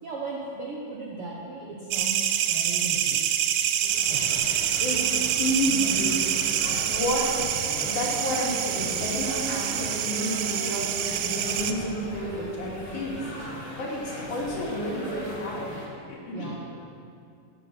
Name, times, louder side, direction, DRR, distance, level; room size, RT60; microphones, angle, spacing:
voice 1, 0.0-3.2 4.1-4.5 16.3-16.6, right 3 dB, 65° right, -3 dB, 1.5 m, -37 dB
sound 1, 1.9-11.7, right 10 dB, 80° right, 2.1 m, -26 dB
sound 2, 3.8-15.9, left 1 dB, 20° left, 1.8 m, -39 dB
sound 3, 4.3-12.0, right 1 dB, ahead, 3.1 m, -48 dB
voice 2, 5.4-7.4 7.8-13.3 13.8-15.7 16.1-16.6, equal, 65° left, -4 dB, 3.6 m, -30 dB
14.0 x 8.2 x 6.0 m, 2.5 s
omnidirectional pair, 3.8 m